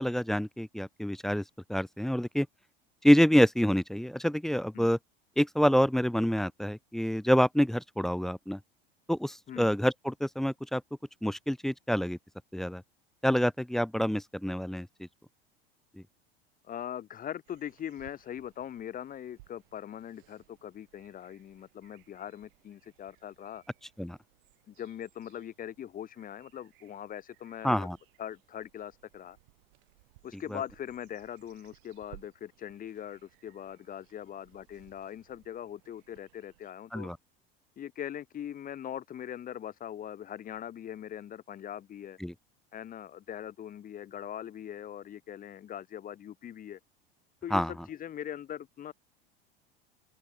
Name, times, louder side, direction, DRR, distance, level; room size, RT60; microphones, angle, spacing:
voice 1, 0.0-1.4 1.7-2.5 3.0-5.0 5.4-8.6 9.1-10.8 11.2-12.2 12.5-12.8 13.2-15.1 24.0-24.2 27.6-28.0 30.3-30.6 36.9-37.2 42.2-42.3 47.5-47.7, equal, ahead, 0.4 m, -27 dB
voice 2, 16.6-23.6 24.7-27.9 28.2-29.4 30.2-37.1 37.8-42.2 42.7-46.8 47.4-48.9, left 10 dB, 30° left, 1.1 m, -41 dB
sound 1, 17.4-36.7, right 23 dB, 60° right, 4.5 m, -62 dB
figure-of-eight pair, 75°, 30 cm